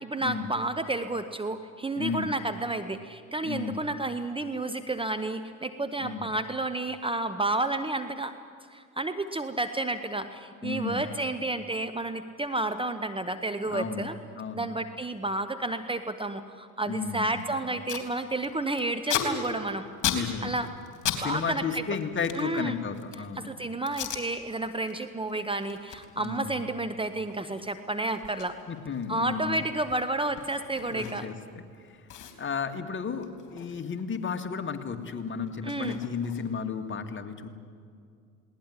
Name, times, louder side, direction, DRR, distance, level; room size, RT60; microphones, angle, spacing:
voice 1, 0.0-8.3 8.7-14.2 14.5-19.9 20.4-20.7 21.2-21.8 22.3-22.8 23.4-28.6 29.1-31.3 35.6-36.0, right 2 dB, 10° right, 10 dB, 1.0 m, -31 dB
voice 2, 2.0-2.3 3.4-3.8 6.0-6.3 10.6-11.1 13.6-14.1 14.4-14.7 16.9-17.5 20.1-20.5 21.1-23.5 26.2-26.6 28.7-29.6 30.9-31.3 32.4-37.5, left 6 dB, 25° left, 5 dB, 2.1 m, -33 dB
Packing tape duct tape, 17.3-17.4 17.6-18.1 18.4-21.2 21.5-23.3 23.9-24.2 24.7-24.9 25.3-31.5 31.7-31.8 32.1-34.5 34.7-36.7, left 9 dB, 45° left, 3.6 m, -37 dB
20.5 x 18.5 x 9.7 m, 2.3 s
hypercardioid pair, 75°, 43 cm